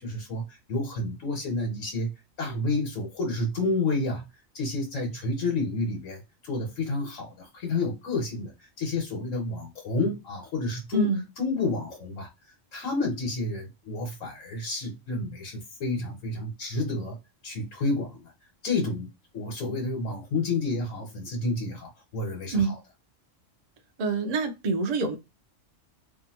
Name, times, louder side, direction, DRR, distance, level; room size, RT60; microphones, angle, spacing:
voice 1, 0.0-2.1 2.4-4.2 4.5-8.5 8.8-11.1 11.4-12.3 12.7-17.2 17.4-18.3 18.6-22.7, left 2 dB, 80° left, 1.3 m, -30 dB
voice 2, 10.9-11.2 22.5-22.7 24.0-25.2, right 3 dB, 50° right, 0.5 m, -26 dB
2.7 x 2.4 x 2.8 m
omnidirectional pair, 1.3 m